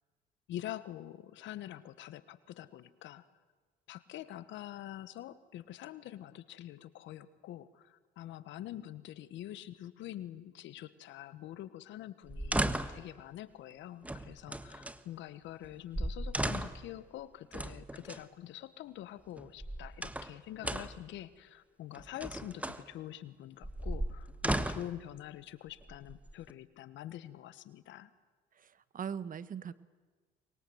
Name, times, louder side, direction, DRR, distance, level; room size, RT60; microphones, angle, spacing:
voice 1, 0.5-3.2 3.9-28.1, left 13 dB, 70° left, 15 dB, 1.3 m, -46 dB
sound 1, 12.3-13.1 14.0-15.0 15.6-15.7 15.9-16.9 17.5-18.2 19.4-20.3 20.6-21.1 21.9-22.8 23.6-25.0 25.8-26.5, right 1 dB, 5° right, 1.4 m, -36 dB
voice 2, 28.6-29.7, right 7 dB, 45° right, 16 dB, 1.1 m, -40 dB
24.0 x 22.0 x 8.0 m, 1.4 s
supercardioid pair, 75°, 20 cm